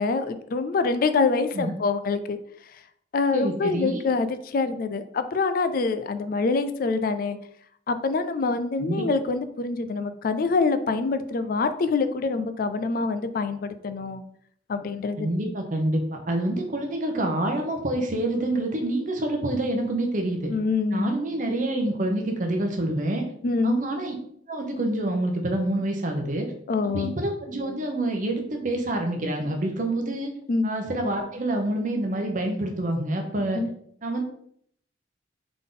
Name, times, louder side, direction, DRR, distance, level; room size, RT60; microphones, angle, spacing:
voice 1, 0.0-2.4 3.1-7.4 7.9-14.2 14.7-15.3 20.5-21.1 23.4-23.8 26.7-27.1 30.5-30.7 33.5-33.7, left 4 dB, 50° left, 10 dB, 0.4 m, -25 dB
voice 2, 3.3-4.0 8.8-9.1 15.2-20.5 20.9-23.3 23.6-24.1 24.5-26.5 26.9-30.3 30.6-33.6 34.0-34.2, right 1 dB, 45° right, 3 dB, 0.9 m, -27 dB
3.8 x 3.6 x 3.8 m, 0.66 s
head